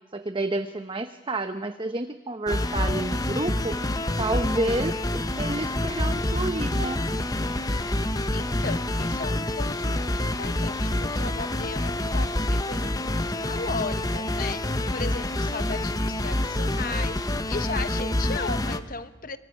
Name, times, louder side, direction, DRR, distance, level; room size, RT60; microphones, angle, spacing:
voice 1, 0.1-3.8 4.2-7.0, right 2 dB, 25° right, 9 dB, 0.9 m, -30 dB
sound 1, 2.5-18.8, left 1 dB, 20° left, 1.0 m, -27 dB
voice 2, 8.1-19.4, left 4 dB, 45° left, 11 dB, 1.1 m, -36 dB
24.5 x 23.5 x 9.9 m, 1.1 s
head